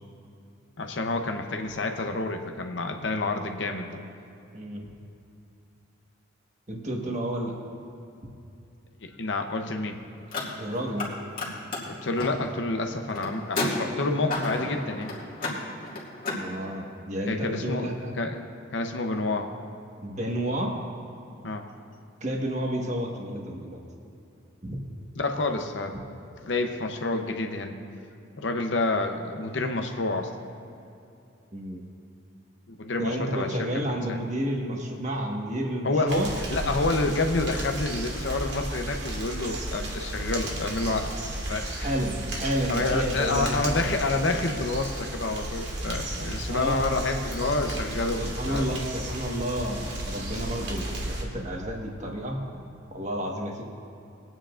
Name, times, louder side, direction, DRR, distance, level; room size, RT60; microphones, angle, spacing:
voice 1, 0.8-3.9 9.0-10.0 11.9-15.1 17.3-17.9 18.1-18.5 18.7-19.5 21.4-21.6 25.1-26.0 26.4-27.8 28.4-30.3 32.7-33.6 33.9-34.2 35.8-41.1 41.4-41.9 42.7-48.7, left 2 dB, 65° left, 4 dB, 0.8 m, -28 dB
voice 2, 6.7-7.5 10.6-11.1 16.4-18.1 20.0-20.7 22.2-23.8 24.6-24.8 31.5-31.8 33.0-36.3 41.8-43.6 46.1-46.8 48.2-52.4 52.9-53.6, equal, 35° right, 0 dB, 1.4 m, -31 dB
Car, 10.2-11.1 11.3-16.4, left 2 dB, 45° left, 2.2 m, -33 dB
sound 1, 36.1-51.2, right 1 dB, 60° right, 1.9 m, -33 dB
21.5 x 9.2 x 2.5 m, 2.7 s
head